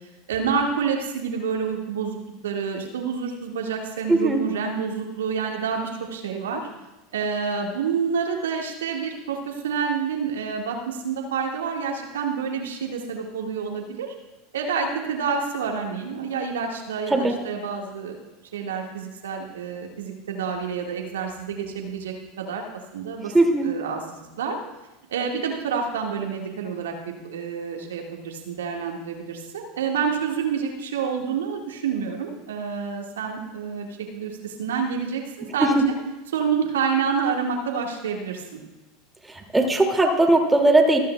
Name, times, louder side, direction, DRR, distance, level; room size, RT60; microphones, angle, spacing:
voice 1, 0.3-2.2 2.4-6.7 7.1-14.1 14.5-18.2 18.5-22.6 22.9-23.3 23.6-24.6 25.1-35.8 36.3-38.6, right 6 dB, 75° right, 1 dB, 1.7 m, -28 dB
voice 2, 4.1-4.5 17.1-17.4 23.3-23.7 35.6-35.8 39.5-41.0, right 2 dB, 10° right, 3 dB, 2.3 m, -18 dB
25.5 x 9.2 x 2.3 m, 1.1 s
figure-of-eight pair, 80°, 0 cm